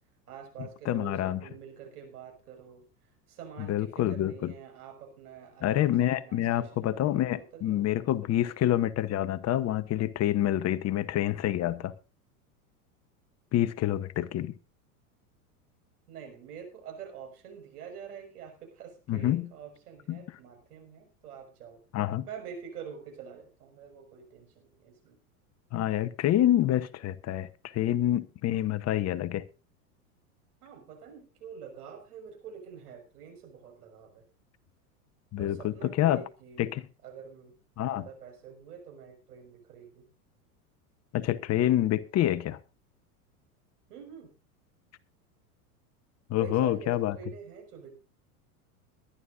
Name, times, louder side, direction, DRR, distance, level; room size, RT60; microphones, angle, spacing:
voice 1, 0.3-8.0 16.1-21.8 22.3-25.2 30.6-34.2 35.4-36.7 37.0-37.5 37.9-40.0 43.9-44.3 46.4-48.0, right 7 dB, 80° right, 6.0 m, -46 dB
voice 2, 0.8-1.4 3.7-4.5 5.6-11.9 13.5-14.5 19.1-19.5 20.1-20.2 21.9-22.2 25.7-29.4 35.3-36.2 36.6-36.8 37.8-38.1 41.1-42.6 46.3-47.1, left 12 dB, 35° left, 1.0 m, -27 dB
22.0 x 11.5 x 2.6 m
hypercardioid pair, 100°, 45 cm